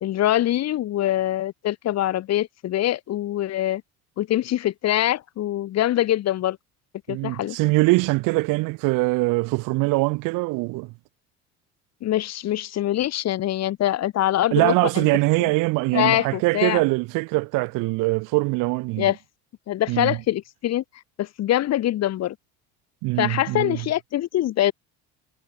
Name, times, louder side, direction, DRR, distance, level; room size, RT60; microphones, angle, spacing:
voice 1, 0.0-3.8 4.2-6.6 7.1-7.6 12.0-15.1 15.9-16.8 19.0-19.2 19.7-20.8 21.2-22.3 23.2-24.7, left 13 dB, 50° left, 2.7 m, -24 dB
voice 2, 7.1-10.9 14.5-19.1 19.9-20.2 23.0-23.8, right 24 dB, 70° right, 1.8 m, -22 dB
supercardioid pair, 115°, 33 cm